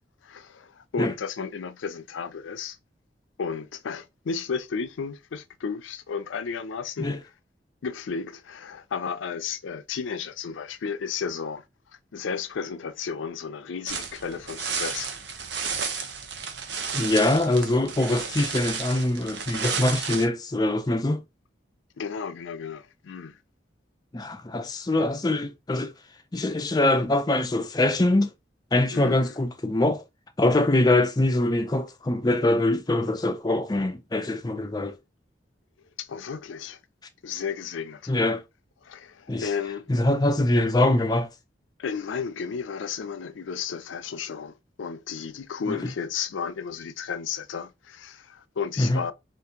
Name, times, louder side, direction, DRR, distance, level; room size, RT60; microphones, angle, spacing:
voice 1, 0.2-2.8 3.4-7.2 7.8-11.6 12.1-15.1 22.0-23.4 28.9-29.4 36.0-36.8 37.2-38.1 38.8-39.9 41.8-49.1, left 6 dB, 90° left, 0.4 m, -33 dB
sound 1, 13.9-20.3, right 6 dB, 70° right, 0.6 m, -32 dB
voice 2, 16.9-21.2 24.1-25.9 26.3-28.3 28.7-30.0 30.4-35.0 38.1-38.4 39.3-39.5 39.9-41.3 45.7-45.8 48.8-49.0, left 1 dB, 20° left, 0.4 m, -23 dB
2.8 x 2.5 x 3.6 m
head